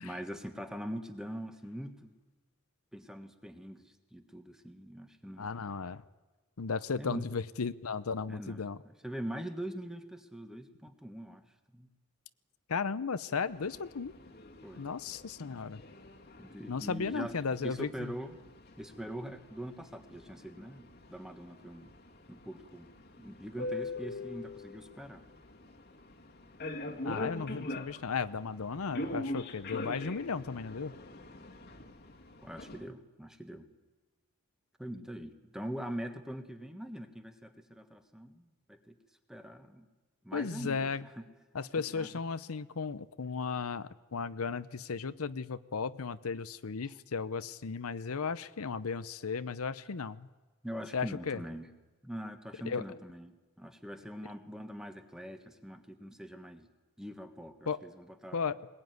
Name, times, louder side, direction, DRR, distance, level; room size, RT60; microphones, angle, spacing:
voice 1, 0.0-2.1 2.9-5.5 7.0-7.2 8.3-8.6 8.8-11.4 11.7-11.9 14.6-14.9 16.4-17.3 17.6-18.4 18.8-21.9 22.3-22.9 23.2-25.2 32.4-33.7 34.8-39.0 39.3-39.9 40.2-41.2 41.9-42.1 50.6-51.7 52.0-56.7 57.0-58.5, equal, 5° right, 6 dB, 1.4 m, -43 dB
voice 2, 5.4-6.0 6.6-8.8 12.7-14.1 14.8-15.8 16.7-18.1 27.0-31.0 40.3-41.1 41.5-50.3 50.9-51.4 52.7-52.8 57.6-57.8 58.3-58.7, left 5 dB, 80° left, 14 dB, 0.7 m, -35 dB
sound 1, 13.5-32.8, left 2 dB, 45° left, 1.8 m, -44 dB
21.0 x 20.0 x 9.4 m, 1.2 s
head